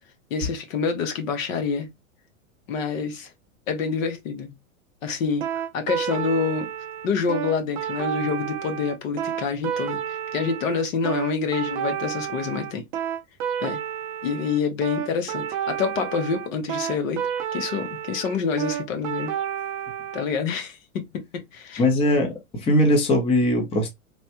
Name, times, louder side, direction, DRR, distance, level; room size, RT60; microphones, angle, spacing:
voice 1, 0.3-1.9 2.7-3.3 3.7-4.5 5.0-6.7 7.0-12.8 13.6-13.8 14.2-19.4 20.1-21.8, left 5 dB, 65° left, 1.0 m, -27 dB
sound 1, 5.4-20.2, right 9 dB, 25° right, 0.3 m, -30 dB
voice 2, 21.8-23.9, left 1 dB, 15° left, 0.6 m, -20 dB
3.3 x 2.1 x 2.8 m
hypercardioid pair, 125°, 43 cm